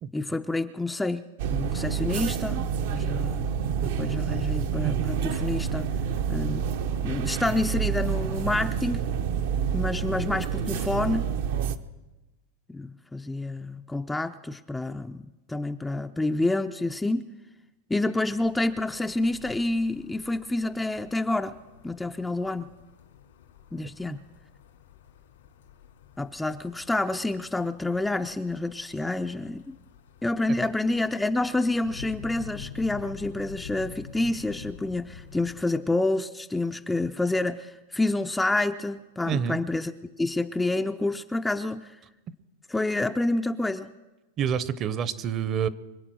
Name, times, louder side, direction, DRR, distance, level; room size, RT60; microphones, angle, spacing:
voice 1, 0.1-2.6 2.9-3.5 3.8-5.9 6.3-6.7 7.0-9.0 9.7-11.3 12.7-15.2 15.5-17.3 17.9-21.6 21.8-22.7 23.7-24.2 26.2-29.7 30.2-39.9 40.2-42.0 42.7-43.9, left 2 dB, 5° left, 7 dB, 0.4 m, -28 dB
sound 1, 1.4-11.8, right 7 dB, 65° right, 0.8 m, -28 dB
sound 2, 18.4-35.6, left 8 dB, 85° left, 3.0 m, -48 dB
voice 2, 39.3-39.6 44.4-45.7, right 8 dB, 30° right, 17 dB, 0.7 m, -27 dB
25.0 x 8.5 x 6.2 m, 1.1 s
supercardioid pair, 140°, 0 cm